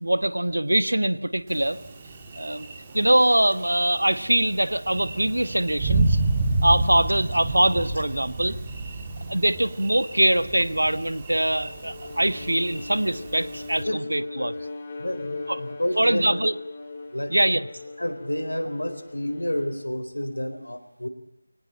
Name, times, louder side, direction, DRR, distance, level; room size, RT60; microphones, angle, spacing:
voice 1, 0.0-1.8 2.4-2.7 2.9-6.2 6.6-8.6 9.3-14.5 15.5-15.6 16.0-16.5 17.3-17.6, right 1 dB, 70° right, 13 dB, 1.4 m, -23 dB
Thunder, 1.5-13.8, right 3 dB, 15° right, 1.9 m, -30 dB
Bowed string instrument, 11.6-20.0, left 3 dB, 20° left, 3.3 m, -39 dB
voice 2, 15.0-16.4 17.1-17.3 18.0-21.1, left 1 dB, 75° left, 8 dB, 4.2 m, -29 dB
23.0 x 19.0 x 9.0 m, 0.79 s
figure-of-eight pair, 165°, 0 cm